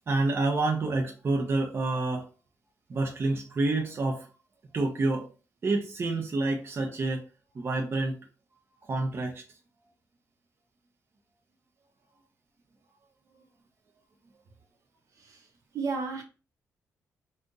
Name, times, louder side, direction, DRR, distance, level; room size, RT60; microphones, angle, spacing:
voice 1, 0.1-2.3 2.9-4.3 4.7-5.3 5.6-7.2 7.5-8.2 8.8-9.4, right 2 dB, 40° right, 2 dB, 0.6 m, -28 dB
voice 2, 15.2-15.5 15.7-16.2, right 4 dB, 60° right, 3 dB, 0.9 m, -33 dB
2.7 x 2.5 x 3.7 m, 0.34 s
cardioid pair, 85°, 6 cm